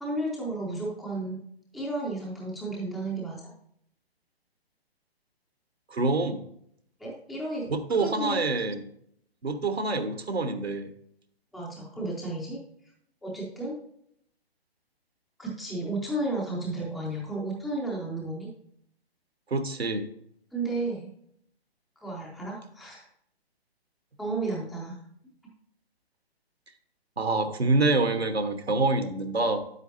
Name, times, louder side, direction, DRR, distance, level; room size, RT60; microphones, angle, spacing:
voice 1, 0.0-1.4 1.7-3.4 7.0-7.7 8.0-8.4 11.5-12.6 13.2-13.7 15.4-18.5 20.5-21.1 22.0-23.0 24.2-25.0, right 2 dB, ahead, -4 dB, 0.4 m, -32 dB
voice 2, 5.9-6.4 7.7-8.9 9.4-10.9 19.5-20.0 27.2-29.6, right 3 dB, 80° right, 9 dB, 1.2 m, -26 dB
9.3 x 8.1 x 2.6 m, 0.70 s
figure-of-eight pair, 130°, 31 cm